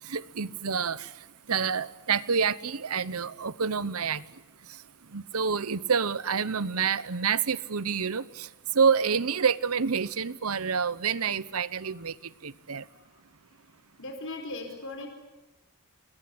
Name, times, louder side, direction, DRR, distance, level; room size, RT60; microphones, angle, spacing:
voice 1, 0.1-1.1 1.5-4.2 5.1-8.5 8.7-12.1 12.4-12.8, right 6 dB, 80° right, 17 dB, 1.0 m, -28 dB
voice 2, 14.0-15.1, left 2 dB, 60° left, 4 dB, 4.7 m, -38 dB
28.5 x 21.0 x 9.8 m, 1.0 s
head